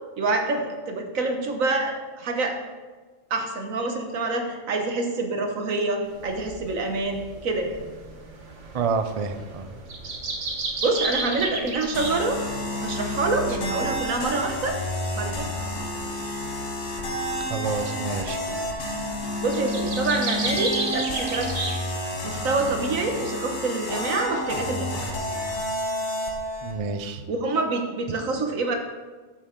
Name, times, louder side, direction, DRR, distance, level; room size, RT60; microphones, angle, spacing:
voice 1, 0.2-2.6 3.3-7.7 10.8-12.4 12.8-14.9 15.2-16.1 19.4-21.6 22.2-24.9 27.3-28.8, right 3 dB, 85° right, 4 dB, 1.6 m, -26 dB
sound 1, 6.1-22.0, right 3 dB, 65° right, 1.6 m, -34 dB
voice 2, 8.7-9.7 17.5-18.4 26.6-27.2, right 4 dB, 40° right, 8 dB, 0.5 m, -28 dB
sound 2, 11.9-26.8, left 1 dB, 65° left, 1.5 m, -30 dB
12.5 x 7.3 x 3.8 m, 1.3 s
omnidirectional pair, 1.4 m